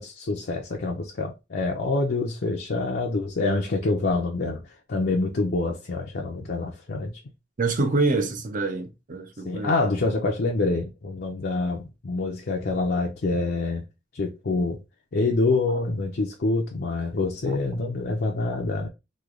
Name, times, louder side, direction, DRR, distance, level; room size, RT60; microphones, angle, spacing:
voice 1, 0.0-4.6 4.9-7.1 9.4-13.8 14.1-14.8 15.1-18.9, left 3 dB, 55° left, 0.5 m, -26 dB
voice 2, 7.6-9.7 15.7-15.8 17.5-17.6, right 3 dB, 45° right, 0.6 m, -26 dB
3.1 x 2.3 x 3.6 m
head